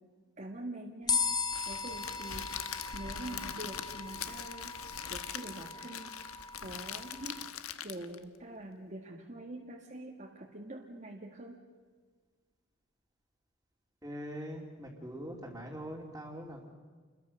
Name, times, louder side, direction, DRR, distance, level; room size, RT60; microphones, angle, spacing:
voice 1, 0.4-1.2 1.7-2.5 2.9-4.7 5.1-6.1 6.6-7.4 7.8-11.6, right 1 dB, 35° right, 0 dB, 1.9 m, -44 dB
sound 1, 1.1-7.5, left 5 dB, 20° left, 0.7 m, -38 dB
Crackle, 1.5-8.2, left 8 dB, 80° left, 1.3 m, -42 dB
voice 2, 14.0-16.7, equal, 15° right, -4 dB, 2.9 m, -42 dB
29.0 x 22.0 x 6.6 m, 1.5 s
head